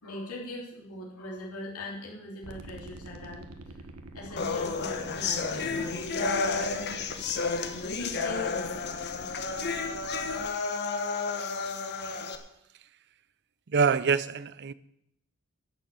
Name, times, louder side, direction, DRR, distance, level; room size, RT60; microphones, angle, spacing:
voice 1, 0.0-3.7 4.1-6.8 7.9-9.3, left 1 dB, 75° left, -3 dB, 3.5 m, -41 dB
sound 1, 2.4-10.4, right 2 dB, 90° right, 1.3 m, -47 dB
sound 2, 4.4-12.4, left 4 dB, 50° left, 1.2 m, -31 dB
voice 2, 13.7-14.7, right 5 dB, 50° right, 17 dB, 0.6 m, -25 dB
11.5 x 6.8 x 9.1 m, 0.78 s
head